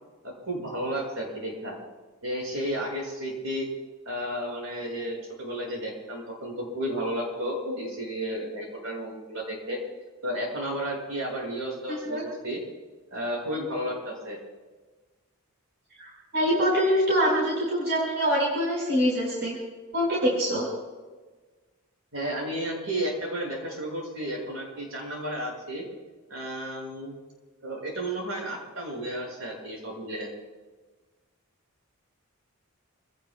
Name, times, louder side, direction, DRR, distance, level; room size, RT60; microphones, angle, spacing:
voice 1, 0.2-1.8 2.2-3.7 4.0-9.8 10.2-12.6 13.1-14.4 22.1-25.8 26.3-27.1 27.6-30.3, equal, 70° right, -1 dB, 6.5 m, -32 dB
voice 2, 11.9-12.2 16.0-19.6 19.9-20.7, equal, 50° right, -4 dB, 5.0 m, -24 dB
28.0 x 17.5 x 2.4 m, 1.3 s
head